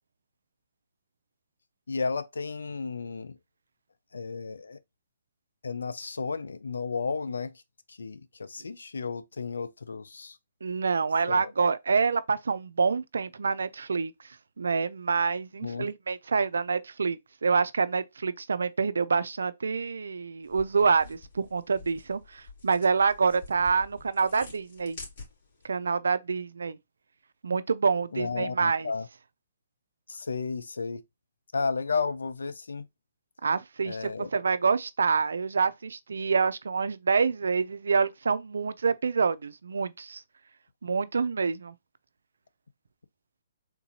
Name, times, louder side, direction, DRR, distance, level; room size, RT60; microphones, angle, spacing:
voice 1, 1.9-3.4 4.1-4.8 5.6-7.5 7.9-10.4 11.3-11.5 15.6-15.9 28.1-29.1 30.1-31.0 31.5-32.9 33.9-34.3, left 4 dB, 85° left, 0.5 m, -33 dB
voice 2, 10.6-14.1 14.6-25.0 25.6-26.8 27.4-28.9 33.4-40.2 40.8-41.7, right 5 dB, 80° right, 0.4 m, -27 dB
sound 1, 20.4-25.7, left 3 dB, 50° left, 2.3 m, -48 dB
3.7 x 2.7 x 2.8 m
hypercardioid pair, 145°, 0 cm